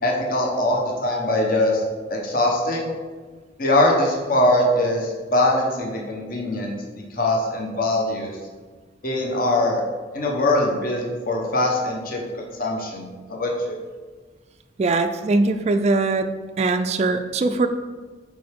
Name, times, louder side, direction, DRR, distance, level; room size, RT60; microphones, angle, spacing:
voice 1, 0.0-1.8 2.1-2.9 3.6-6.8 7.1-8.4 9.0-9.8 10.1-13.8, left 1 dB, 50° left, 0 dB, 1.0 m, -22 dB
voice 2, 14.8-16.3 16.6-17.7, right 3 dB, 35° right, 7 dB, 0.3 m, -21 dB
7.6 x 4.7 x 3.5 m, 1.4 s
head